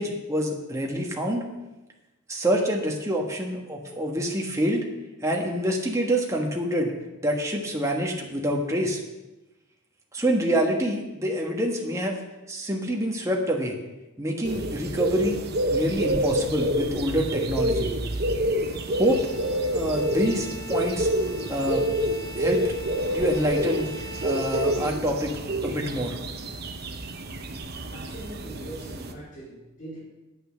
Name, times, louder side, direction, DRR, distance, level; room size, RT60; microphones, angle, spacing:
voice 1, 0.0-1.5 2.3-4.9 5.2-6.9 7.2-9.0 10.1-12.2 12.5-13.8 14.2-15.4 15.7-17.9 19.0-19.2 19.7-21.1 21.5-21.8 22.4-22.6 23.1-23.9 24.2-25.4 25.6-26.2, equal, 15° right, 0 dB, 1.5 m, -26 dB
sound 1, 14.4-29.1, equal, 50° right, 0.8 m, -28 dB
Bowed string instrument, 18.7-25.5, right 1 dB, 20° left, 1.0 m, -42 dB
voice 2, 27.9-30.0, right 1 dB, 40° left, -6 dB, 4.7 m, -41 dB
9.3 x 8.7 x 6.4 m, 1.1 s
head